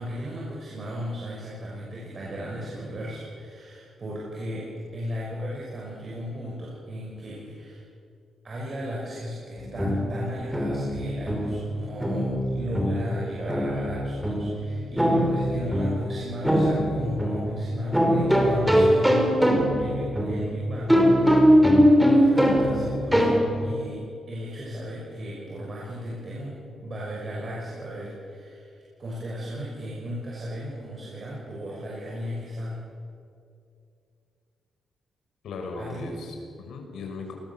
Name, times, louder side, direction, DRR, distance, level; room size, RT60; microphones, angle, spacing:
voice 1, 0.0-7.8 8.4-19.5 19.8-23.3 23.6-32.8 35.8-36.2, equal, 35° right, -4 dB, 5.9 m, -35 dB
sound 1, 9.6-23.8, equal, 5° right, 3.4 m, -22 dB
voice 2, 35.4-37.3, left 3 dB, 75° left, 3 dB, 5.8 m, -37 dB
29.0 x 20.5 x 7.4 m, 2.5 s
wide cardioid pair, 155°, 0 cm